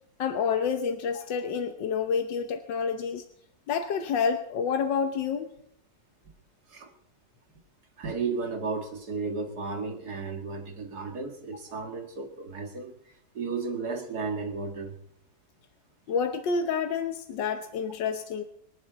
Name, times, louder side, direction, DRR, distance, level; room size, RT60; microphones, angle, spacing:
voice 1, 0.2-3.2 3.7-5.5 16.1-18.4, left 6 dB, 85° left, 6 dB, 1.7 m, -28 dB
voice 2, 8.0-12.9 13.3-15.0, right 4 dB, 60° right, 3 dB, 2.6 m, -33 dB
25.5 x 11.5 x 4.0 m, 0.73 s
omnidirectional pair, 1.9 m